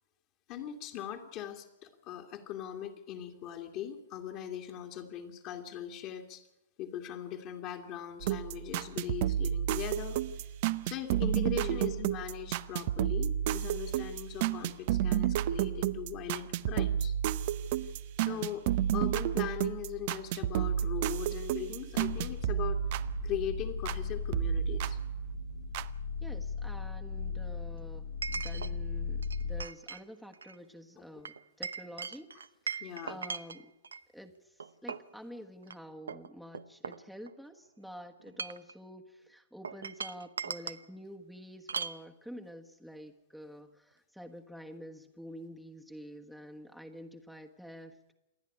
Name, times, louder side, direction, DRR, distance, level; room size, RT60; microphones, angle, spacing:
voice 1, 0.5-6.4 6.8-10.2 10.8-17.1 18.2-18.6 18.9-22.8 23.2-25.0 31.0-31.1 32.8-33.2, left 10 dB, 40° left, 2 dB, 2.1 m, -40 dB
sound 1, 8.2-24.0 24.3-25.9, right 11 dB, 50° right, 0.8 m, -31 dB
voice 2, 11.6-12.1 18.3-18.5 26.2-32.3 32.7-33.7 34.1-48.1, equal, ahead, 3 dB, 1.4 m, -48 dB
sound 2, 21.9-29.7, left 5 dB, 65° left, 0.9 m, -38 dB
Chink clink, 24.8-24.9 28.2-28.7 29.2-30.0 30.3-30.6 31.3-34.0 34.6-35.1 35.6-35.8 36.1-37.5 38.2-38.7 39.6-40.8 41.7-42.0, right 5 dB, 80° right, 0.8 m, -39 dB
27.0 x 10.0 x 9.7 m, 0.96 s
hypercardioid pair, 115°, 0 cm